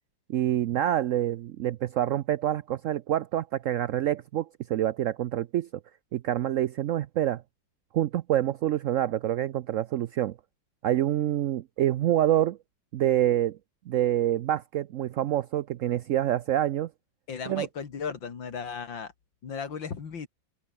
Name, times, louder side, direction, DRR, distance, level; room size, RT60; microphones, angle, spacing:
voice 1, 0.3-5.7 6.1-7.4 7.9-10.3 10.8-12.6 12.9-13.6 13.9-16.9 17.5-17.7, right 12 dB, 75° right, 0.7 m, -26 dB
voice 2, 17.3-19.1 19.4-20.3, left 6 dB, 90° left, 3.0 m, -36 dB
open air
omnidirectional pair, 2.0 m